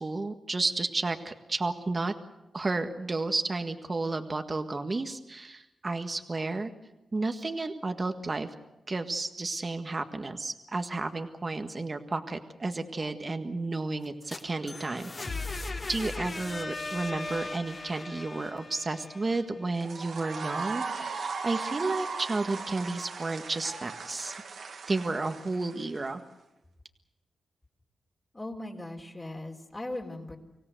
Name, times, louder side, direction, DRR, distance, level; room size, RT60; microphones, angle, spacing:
voice 1, 0.0-2.1 2.5-6.7 7.1-8.5 8.9-15.4 15.9-24.3 24.9-26.2, right 3 dB, 40° right, 6 dB, 1.7 m, -32 dB
sound 1, 14.0-19.9, left 3 dB, 40° left, 3.6 m, -38 dB
sound 2, 19.7-26.1, right 5 dB, 70° right, 2.3 m, -37 dB
voice 2, 28.3-30.4, left 1 dB, 25° left, 0 dB, 3.9 m, -38 dB
25.0 x 16.5 x 8.1 m, 0.97 s
cardioid pair, 65°, 0 cm